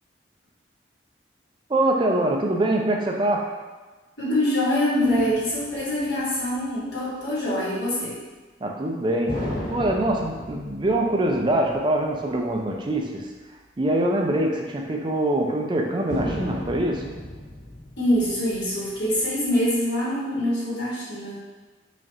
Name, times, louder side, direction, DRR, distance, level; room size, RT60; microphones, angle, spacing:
voice 1, 1.7-3.5 8.6-13.3 13.8-17.1, right 1 dB, 25° right, 1 dB, 0.4 m, -24 dB
voice 2, 4.2-8.2 18.0-21.4, left 1 dB, 80° left, -8 dB, 1.4 m, -24 dB
sound 1, 5.0-6.9 9.3-13.0 13.4-13.5 16.1-19.8, left 1 dB, 50° left, 0.9 m, -36 dB
5.1 x 2.4 x 2.7 m, 1.3 s
head